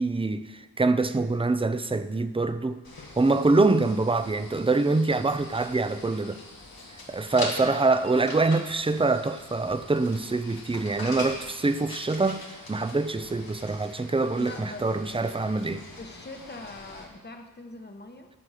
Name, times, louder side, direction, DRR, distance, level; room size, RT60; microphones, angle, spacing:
voice 1, 0.0-2.8 3.2-6.4 7.1-15.8, right 3 dB, 15° right, 0.5 m, -25 dB
sound 1, 2.8-17.0, left 2 dB, 90° left, 1.8 m, -42 dB
voice 2, 14.4-15.5 16.0-18.3, left 2 dB, 30° left, 1.1 m, -42 dB
15.0 x 6.1 x 4.9 m
wide cardioid pair, 60°, 35 cm